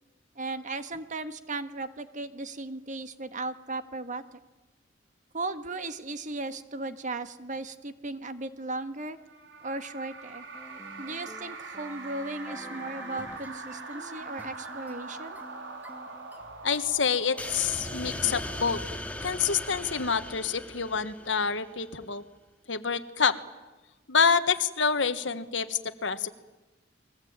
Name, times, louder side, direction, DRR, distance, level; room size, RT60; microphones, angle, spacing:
voice 1, 0.3-4.4 5.3-9.2 9.6-10.4 11.0-15.4, right 2 dB, 45° right, 10 dB, 1.5 m, -36 dB
sound 1, 9.3-19.0, right 3 dB, 85° right, 4.1 m, -43 dB
sound 2, 10.5-17.4, equal, 10° right, 2.5 m, -48 dB
voice 2, 16.6-18.8 19.2-22.2 22.7-23.4 24.1-26.3, left 6 dB, 75° left, 12 dB, 1.4 m, -27 dB
sound 3, 17.4-21.7, left 1 dB, 10° left, 2.0 m, -38 dB
29.5 x 22.0 x 8.8 m, 1.2 s
head